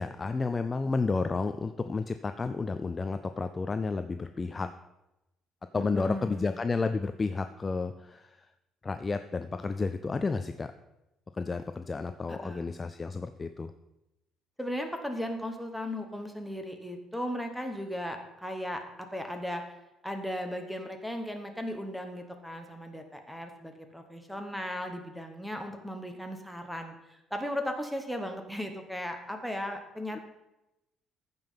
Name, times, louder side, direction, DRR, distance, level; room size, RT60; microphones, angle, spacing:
voice 1, 0.0-4.7 5.7-8.3 8.8-10.7 11.4-13.7, left 4 dB, 20° left, 9 dB, 0.3 m, -31 dB
voice 2, 5.8-6.4 12.3-12.7 14.6-19.7 20.0-30.2, equal, ahead, 5 dB, 1.0 m, -36 dB
14.5 x 5.3 x 5.6 m, 0.94 s
cardioid pair, 170°, 0 cm